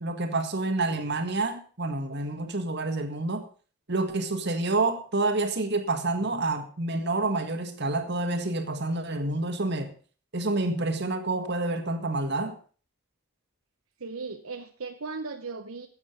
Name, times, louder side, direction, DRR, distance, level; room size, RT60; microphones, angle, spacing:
voice 1, 0.0-3.4 3.9-9.9 10.3-12.6, right 2 dB, 50° right, 7 dB, 1.8 m, -28 dB
voice 2, 14.0-15.9, right 4 dB, 75° right, 6 dB, 0.9 m, -37 dB
13.5 x 8.7 x 5.6 m, 0.40 s
head